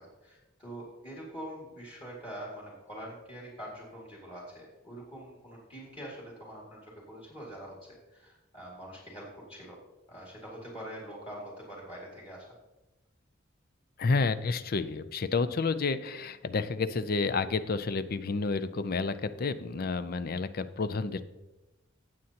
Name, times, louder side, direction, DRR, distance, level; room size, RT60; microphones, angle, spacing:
voice 1, 0.0-6.8 7.1-9.8 10.1-12.5, equal, 30° left, -4 dB, 2.2 m, -44 dB
voice 2, 14.0-21.2, left 4 dB, 50° left, 13 dB, 0.5 m, -30 dB
17.0 x 7.7 x 2.9 m, 1.0 s
head